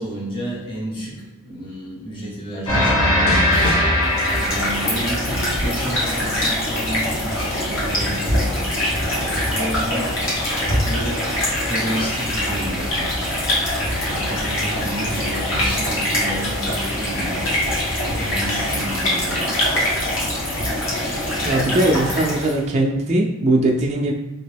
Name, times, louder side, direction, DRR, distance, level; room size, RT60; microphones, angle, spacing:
voice 1, 0.0-4.0 4.3-10.5 10.7-11.3 11.7-13.2 14.1-17.7 18.1-20.3, right 1 dB, 25° left, -6 dB, 0.9 m, -32 dB
sound 1, 2.7-5.6, left 1 dB, 85° left, 1.1 m, -19 dB
sound 2, 4.0-22.6, left 1 dB, 60° left, 1.2 m, -23 dB
voice 2, 21.4-24.1, right 1 dB, 30° right, 0 dB, 0.3 m, -20 dB
2.9 x 2.8 x 3.4 m, 1.1 s
head